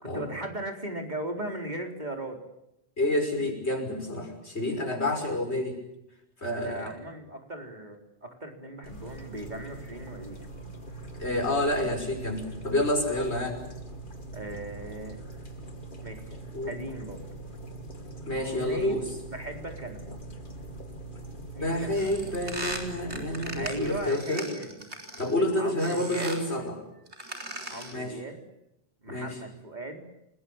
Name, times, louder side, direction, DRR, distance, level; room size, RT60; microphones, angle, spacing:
voice 1, 0.0-2.4 5.0-5.3 6.5-10.4 14.3-15.2 16.0-16.4 16.6-17.4 18.4-19.0 19.3-20.1 21.5-22.1 23.5-24.9 25.6-26.4 27.7-28.4 29.0-30.0, right 1 dB, 40° right, 3 dB, 4.1 m, -38 dB
voice 2, 3.0-5.8 6.4-6.9 11.2-13.6 16.5-16.7 18.3-19.0 21.6-24.5 25.2-26.8 27.9-28.2 29.1-29.4, left 1 dB, 70° left, 4 dB, 6.3 m, -29 dB
sound 1, 8.8-24.1, right 2 dB, 45° left, 2.8 m, -42 dB
sound 2, 21.9-25.4 25.8-26.5 27.1-28.0, right 1 dB, 75° right, 4.8 m, -38 dB
29.5 x 21.0 x 8.8 m, 0.83 s
omnidirectional pair, 1.1 m